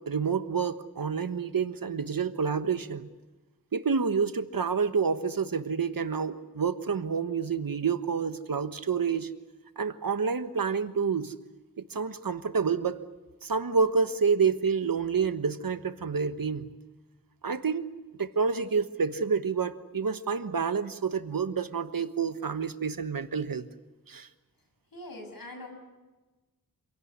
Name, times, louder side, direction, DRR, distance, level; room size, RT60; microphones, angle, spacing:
voice 1, 0.1-3.1 3.7-9.3 9.8-11.3 11.8-13.0 13.4-16.7 17.4-17.8 18.2-23.7 24.1-24.3, right 5 dB, 80° right, 10 dB, 1.3 m, -28 dB
voice 2, 24.9-25.7, left 1 dB, 80° left, 4 dB, 6.9 m, -42 dB
26.5 x 17.5 x 9.5 m, 1.2 s
wide cardioid pair, 70°, 34 cm